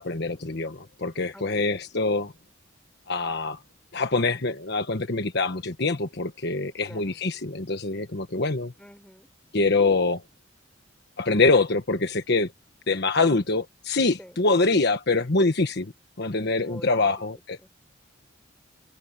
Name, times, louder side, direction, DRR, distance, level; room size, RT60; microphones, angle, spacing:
voice 1, 0.0-2.3 3.1-3.6 3.9-8.7 9.5-10.2 11.2-12.5 12.9-15.9 16.2-17.6, left 3 dB, 55° left, 1.3 m, -24 dB
voice 2, 1.3-1.7 6.8-7.2 8.8-9.3 14.2-14.4 16.6-17.2 17.6-17.7, equal, 5° left, 5.2 m, -47 dB
head